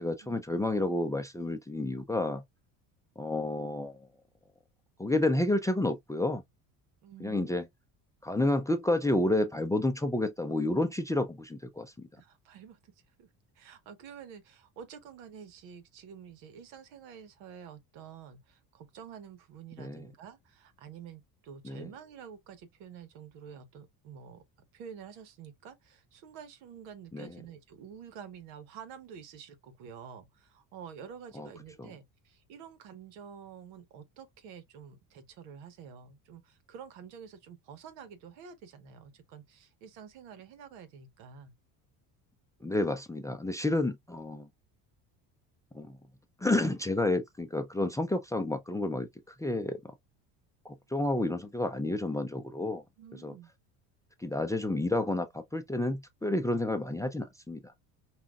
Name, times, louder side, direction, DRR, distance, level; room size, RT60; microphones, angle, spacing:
voice 1, 0.0-2.4 3.2-4.0 5.0-6.4 7.2-7.7 8.2-12.1 19.8-20.1 21.6-21.9 27.1-27.3 31.3-31.5 31.8-31.9 42.6-44.5 45.7-46.0 46.4-49.1 49.4-49.8 50.6-52.8 53.1-53.3 54.2-57.6, left 2 dB, 5° left, 0.5 m, -30 dB
voice 2, 7.0-7.5 12.1-12.9 13.2-13.3 13.5-24.4 24.7-41.5 53.0-53.5, right 7 dB, 75° right, 1.2 m, -49 dB
5.6 x 2.4 x 2.3 m
supercardioid pair, 80°, 45 cm